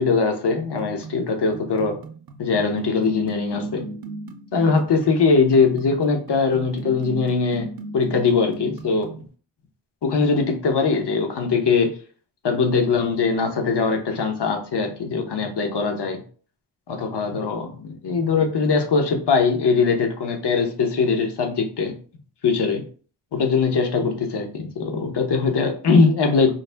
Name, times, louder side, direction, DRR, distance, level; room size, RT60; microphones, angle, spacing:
voice 1, 0.0-2.0 2.4-3.8 4.5-7.7 7.9-9.1 10.0-11.9 12.4-16.2 16.9-21.9 22.4-22.8 23.3-26.5, left 4 dB, 60° left, 4 dB, 0.9 m, -21 dB
sound 1, 0.8-9.3, right 3 dB, 50° right, 0.6 m, -38 dB
4.0 x 2.1 x 3.3 m, 0.41 s
cardioid pair, 55°, 47 cm